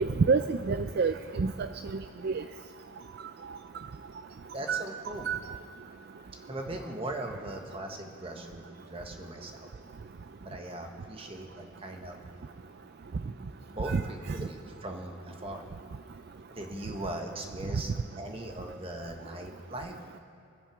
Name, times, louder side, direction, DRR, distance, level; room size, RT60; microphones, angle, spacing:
voice 1, 0.0-1.7 2.2-2.4 4.7-4.8 5.3-5.4 13.9-14.0, right 5 dB, 50° right, 9 dB, 0.4 m, -27 dB
voice 2, 4.5-5.3 6.5-9.7 10.4-12.2 13.7-15.7 16.5-20.0, right 1 dB, 30° right, 3 dB, 1.4 m, -39 dB
24.5 x 9.0 x 5.0 m, 2.7 s
head